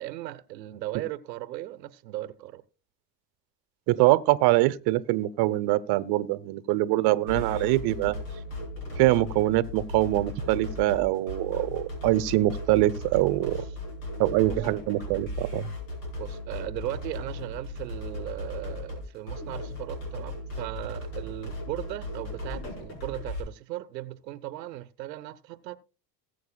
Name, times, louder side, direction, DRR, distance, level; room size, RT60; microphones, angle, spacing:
voice 1, 0.0-2.6 13.3-13.5 14.4-14.6 16.2-25.8, right 15 dB, 85° right, 0.9 m, -37 dB
voice 2, 3.9-8.1 9.0-13.6 14.2-15.7, right 17 dB, 50° right, 0.8 m, -24 dB
sound 1, 7.3-23.4, left 1 dB, 80° left, 5.0 m, -37 dB
20.0 x 7.9 x 2.2 m
hypercardioid pair, 85°, 49 cm